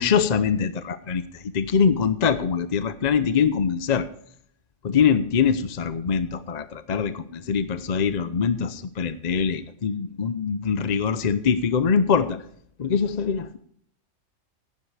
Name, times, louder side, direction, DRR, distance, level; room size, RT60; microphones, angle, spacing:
voice 1, 0.0-4.1 4.8-12.4 12.8-13.6, left 6 dB, 45° left, 12 dB, 0.6 m, -23 dB
14.5 x 11.0 x 3.3 m, 0.62 s
omnidirectional pair, 1.4 m